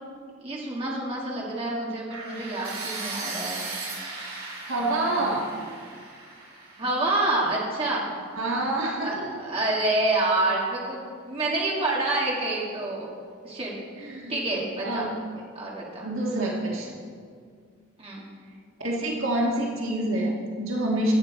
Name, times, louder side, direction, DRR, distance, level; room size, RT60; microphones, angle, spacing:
voice 1, 0.4-3.7 4.7-5.1 6.8-8.1 9.0-13.1 13.4-13.8 14.3-15.1 15.5-16.1 18.0-18.2, right 2 dB, 25° right, -4 dB, 2.0 m, -28 dB
sound 1, 2.1-8.0, right 3 dB, 90° right, 3.5 m, -37 dB
voice 2, 4.7-5.5 8.3-9.1 13.9-14.4 14.8-15.1 16.0-16.9 18.8-21.1, right 1 dB, 70° right, -2 dB, 1.6 m, -27 dB
16.0 x 7.4 x 4.2 m, 2.1 s
head